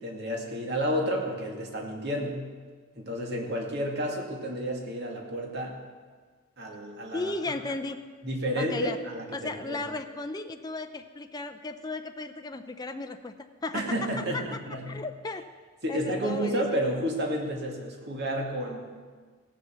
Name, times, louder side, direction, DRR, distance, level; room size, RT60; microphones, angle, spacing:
voice 1, 0.0-2.4 2.9-5.8 6.6-7.3 8.2-9.8 13.7-15.0 15.8-19.0, equal, 50° right, 0 dB, 2.2 m, -31 dB
voice 2, 7.1-8.0 8.6-9.0 9.3-13.3 13.6-14.6 14.9-15.4 15.9-16.6, left 3 dB, 20° left, 6 dB, 0.5 m, -35 dB
16.5 x 7.5 x 6.9 m, 1.5 s
head